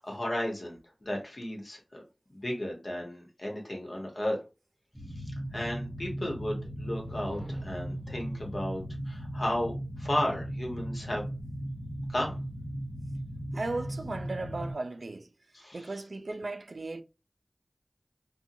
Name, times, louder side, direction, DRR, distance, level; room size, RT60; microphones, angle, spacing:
voice 1, 0.0-2.0 2.3-4.4 5.2-11.3 12.1-12.4 15.5-16.0, left 1 dB, 65° left, 1.0 m, -34 dB
sound 1, 4.9-14.7, equal, 15° right, 0.9 m, -37 dB
sound 2, 6.9-8.1, right 1 dB, 30° left, 0.9 m, -46 dB
voice 2, 13.5-15.3 15.7-17.0, right 2 dB, 80° right, 0.3 m, -36 dB
2.6 x 2.2 x 2.6 m
wide cardioid pair, 60°, 0 cm